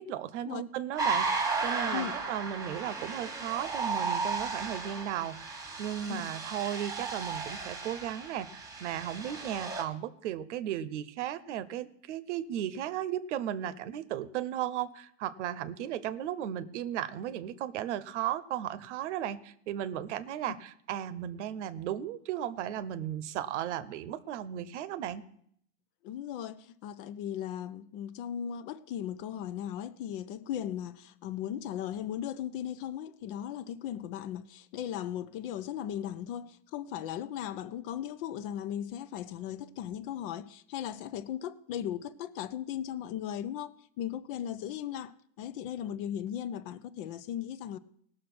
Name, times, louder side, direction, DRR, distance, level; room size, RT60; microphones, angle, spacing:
voice 1, 0.0-25.2, right 11 dB, 65° right, 0.9 m, -35 dB
sound 1, 1.0-9.8, right 4 dB, 10° right, 1.5 m, -34 dB
voice 2, 1.9-2.3 6.1-6.2 26.0-47.8, left 10 dB, 45° left, 0.7 m, -37 dB
17.5 x 6.4 x 6.1 m
supercardioid pair, 145°, 38 cm